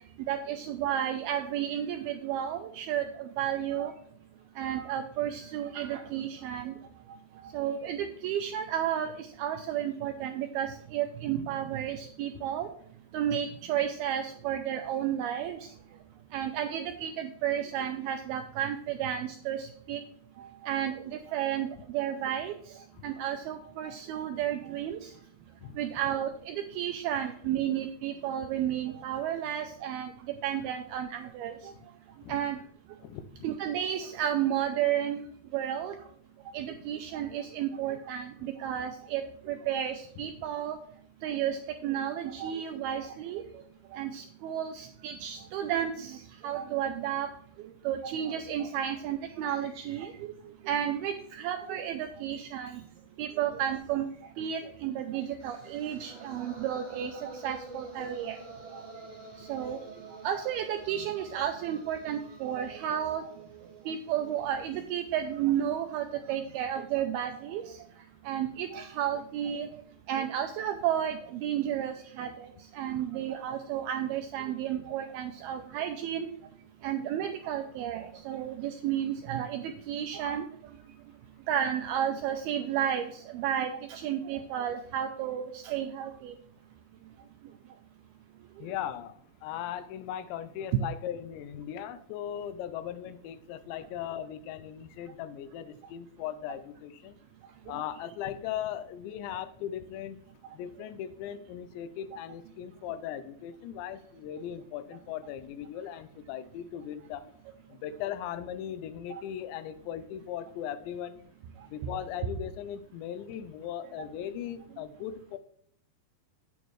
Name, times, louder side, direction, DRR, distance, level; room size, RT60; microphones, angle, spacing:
voice 1, 0.3-3.9 4.6-6.8 7.5-12.7 13.1-15.6 16.3-20.0 20.4-22.5 23.0-25.1 25.8-30.1 30.4-31.7 32.3-32.6 33.4-35.2 35.5-36.0 36.5-40.8 41.2-43.4 43.9-47.3 47.8-50.1 50.7-52.8 53.2-54.1 54.4-58.4 58.7-58.8 59.5-59.8 60.2-63.2 63.9-67.6 68.3-69.7 70.1-76.3 76.8-80.5 81.5-86.3, right 10 dB, 85° right, 6 dB, 2.2 m, -32 dB
voice 2, 33.0-33.5 40.2-40.3 88.6-97.2 97.7-100.2 100.5-107.3 107.7-111.3 111.7-115.4, left 10 dB, 85° left, 13 dB, 2.9 m, -38 dB
sound 1, 55.4-65.5, right 2 dB, 20° right, 1.3 m, -48 dB
9.0 x 8.8 x 3.1 m, 0.63 s
omnidirectional pair, 5.0 m